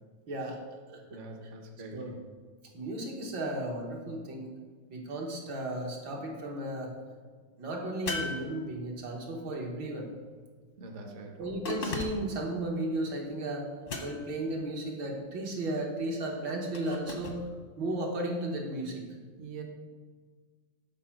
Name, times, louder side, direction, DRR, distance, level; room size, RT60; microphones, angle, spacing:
voice 1, 0.3-0.6 0.9-1.2 1.9-2.1 2.7-4.5 4.9-6.9 7.6-10.1 11.4-13.7 14.0-17.4 17.8-19.0, right 1 dB, 70° right, 0 dB, 1.9 m, -34 dB
voice 2, 1.1-2.2 10.8-11.5 19.4-19.6, right 3 dB, 50° right, 3 dB, 0.9 m, -44 dB
sound 1, 8.1-9.2 11.6-12.4 13.9-14.5 16.7-17.4, left 2 dB, 50° left, 0.6 m, -37 dB
7.5 x 4.3 x 5.8 m, 1.5 s
omnidirectional pair, 2.1 m